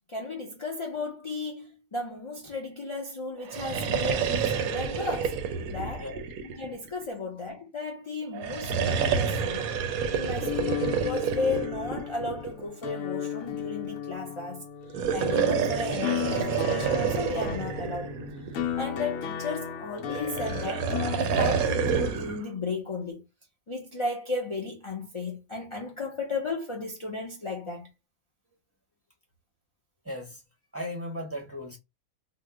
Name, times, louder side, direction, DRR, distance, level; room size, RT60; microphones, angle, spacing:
voice 1, 0.1-5.4 5.7-6.1 6.4-9.7 10.1-14.6 15.1-18.1 18.8-20.9 21.2-23.2 23.7-27.9, left 3 dB, 45° left, 0.4 m, -34 dB
sound 1, 3.4-7.0 8.3-12.7 14.8-18.8 20.1-22.4, right 6 dB, 75° right, 1.0 m, -29 dB
sound 2, 10.4-21.2, left 9 dB, 70° left, 1.0 m, -34 dB
voice 2, 30.0-30.4 30.7-31.8, equal, 10° right, 0.7 m, -36 dB
2.8 x 2.0 x 3.6 m
omnidirectional pair, 1.5 m